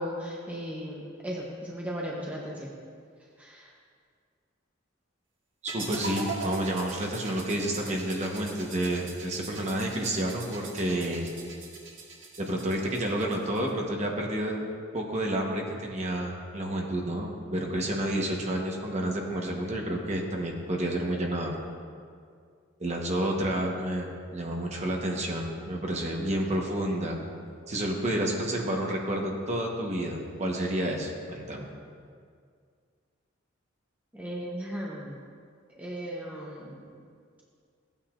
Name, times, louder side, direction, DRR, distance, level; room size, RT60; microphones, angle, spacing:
voice 1, 0.0-2.7 3.4-3.7 34.1-35.2 35.8-36.8, equal, 5° right, -4 dB, 0.8 m, -36 dB
voice 2, 5.6-11.3 12.4-14.6 14.9-21.5 22.8-24.1 24.3-27.2 27.7-31.7, right 1 dB, 35° right, 0 dB, 1.1 m, -30 dB
sound 1, 5.7-13.7, right 3 dB, 65° right, 1.5 m, -41 dB
15.0 x 8.9 x 2.5 m, 2.2 s
head